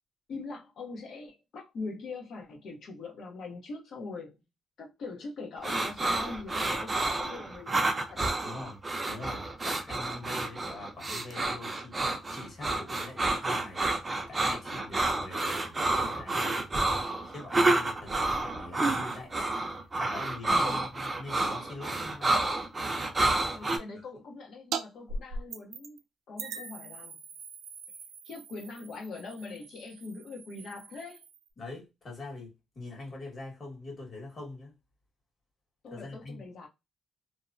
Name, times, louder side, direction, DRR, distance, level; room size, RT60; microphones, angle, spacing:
voice 1, 0.3-4.4 4.8-8.4 20.6-20.8 23.5-26.0 26.3-27.3 28.2-31.2 35.8-36.7, left 3 dB, 65° left, 0.9 m, -42 dB
sound 1, 5.6-23.8, right 2 dB, 25° right, 0.5 m, -29 dB
voice 2, 8.4-12.0 12.3-14.0 14.3-16.7 17.2-19.4 19.9-22.3 23.9-24.0 31.6-34.7 35.9-36.4, left 2 dB, 40° left, 1.5 m, -43 dB
sound 2, 24.7-24.8 25.1-26.0 26.4-31.5, right 4 dB, 85° right, 0.4 m, -41 dB
2.7 x 2.1 x 2.5 m
cardioid pair, 100°, 0 cm